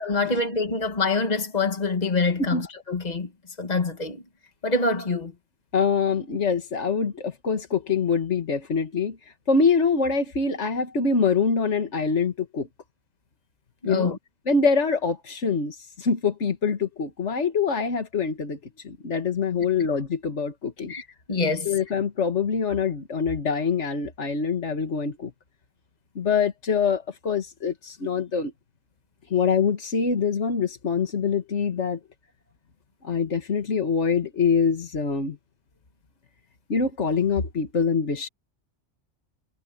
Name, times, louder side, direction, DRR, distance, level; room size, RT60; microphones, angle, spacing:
voice 1, 0.0-3.3 3.6-4.2 4.6-5.3 13.8-14.2 20.9-21.7, left 3 dB, 35° left, 2.0 m, -25 dB
voice 2, 5.7-9.2 9.5-12.7 13.9-14.1 14.5-18.6 18.8-20.9 21.7-25.3 26.2-28.5 29.3-32.0 33.0-35.4 36.7-38.3, left 5 dB, 80° left, 2.1 m, -24 dB
omnidirectional pair, 1.2 m